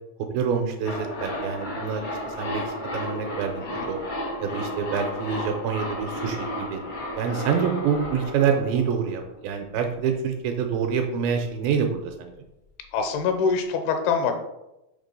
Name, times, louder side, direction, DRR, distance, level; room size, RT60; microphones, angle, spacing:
voice 1, 0.3-2.6 2.9-3.6 3.9-4.0 4.4-6.8 7.2-12.3, right 7 dB, 80° right, 4 dB, 2.3 m, -26 dB
sound 1, 0.8-9.6 9.9-10.0, left 1 dB, 60° left, 0.7 m, -33 dB
voice 2, 12.9-14.3, left 5 dB, 80° left, 5 dB, 2.6 m, -25 dB
5.8 x 3.6 x 5.3 m, 0.92 s
omnidirectional pair, 4.5 m